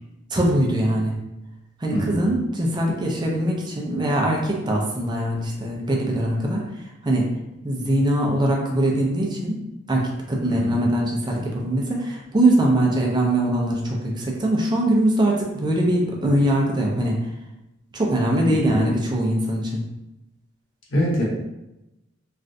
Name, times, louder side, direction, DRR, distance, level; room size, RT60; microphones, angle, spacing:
voice 1, 0.3-1.2 1.8-6.7 7.0-7.3 7.6-9.6 9.9-17.3 17.9-19.8, right 1 dB, 25° right, -1 dB, 0.5 m, -22 dB
voice 2, 1.9-2.3 10.5-10.8 18.5-18.8 20.9-21.2, equal, 75° left, -3 dB, 0.9 m, -24 dB
3.2 x 2.5 x 2.6 m, 0.93 s
head